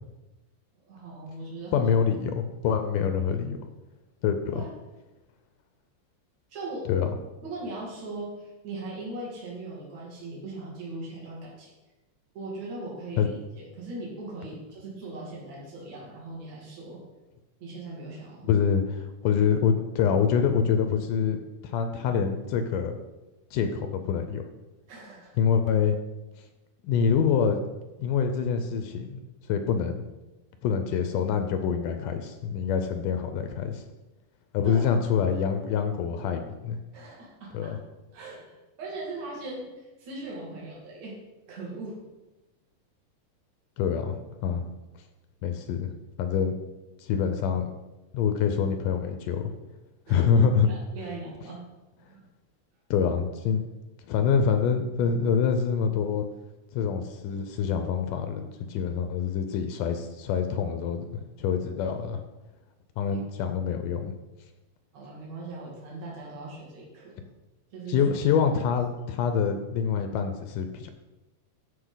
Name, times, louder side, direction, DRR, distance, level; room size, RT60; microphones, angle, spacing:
voice 1, 0.9-1.9 4.5-4.7 6.5-6.9 7.4-11.7 12.3-17.0 17.6-18.5 24.9-25.3 34.7-34.9 36.9-37.8 38.1-41.2 41.5-42.0 50.1-50.2 50.7-51.7 52.1-52.2 63.1-63.2 64.9-67.2 67.7-68.0, right 2 dB, 55° right, -5 dB, 3.6 m, -39 dB
voice 2, 1.7-3.6 4.2-4.6 6.9-7.1 13.2-13.3 18.4-21.4 21.6-23.0 23.5-24.4 25.4-26.0 26.8-27.6 28.0-29.2 29.5-30.0 30.6-33.8 34.5-36.8 37.5-37.8 43.8-44.7 45.4-45.9 46.2-46.6 47.0-47.7 48.1-49.5 50.1-50.7 52.9-53.6 54.1-56.2 56.7-62.2 63.0-64.1 67.9-70.9, left 7 dB, 80° left, 7 dB, 2.2 m, -26 dB
14.5 x 5.3 x 3.9 m, 1.1 s
omnidirectional pair, 4.0 m